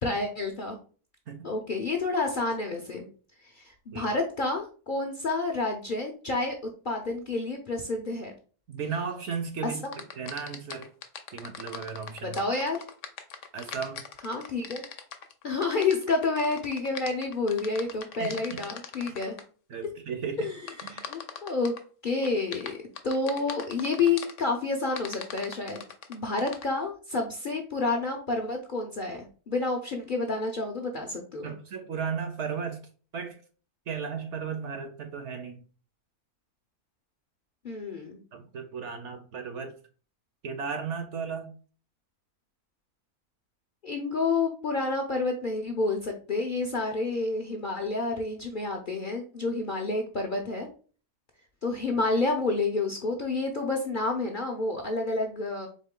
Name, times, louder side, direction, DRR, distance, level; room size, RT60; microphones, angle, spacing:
voice 1, 0.0-0.8 1.4-3.1 3.5-6.5 6.8-8.3 9.6-9.9 12.2-12.8 14.2-14.8 15.4-19.4 20.4-21.7 22.0-22.8 23.0-25.8 26.1-31.5 37.6-38.2 43.8-50.7 51.6-55.7, left 3 dB, 50° left, 1 dB, 0.6 m, -29 dB
voice 2, 8.7-9.8 10.2-10.9 11.3-12.4 13.5-14.0 18.2-18.7 19.1-19.2 19.7-20.5 20.8-21.0 31.4-32.8 33.1-33.4 33.9-35.6 38.3-39.8 40.4-41.5, right 6 dB, 60° right, 7 dB, 0.9 m, -35 dB
sound 1, 9.8-19.4 20.7-21.8 22.2-24.4 25.0-26.6, left 7 dB, 65° left, 0.9 m, -40 dB
4.3 x 3.1 x 3.7 m, 0.39 s
omnidirectional pair, 1.6 m